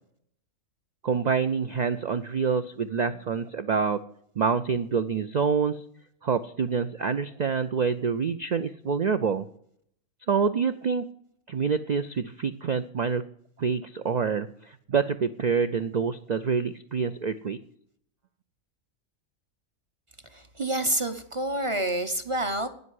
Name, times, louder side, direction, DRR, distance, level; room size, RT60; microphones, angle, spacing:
voice 1, 1.0-4.0 4.4-5.8 6.2-9.5 10.3-11.0 11.5-13.2 13.6-17.6, right 6 dB, 90° right, 11 dB, 0.3 m, -26 dB
voice 2, 20.3-22.7, right 1 dB, 30° right, 8 dB, 0.7 m, -28 dB
9.7 x 8.0 x 9.4 m, 0.68 s
omnidirectional pair, 1.4 m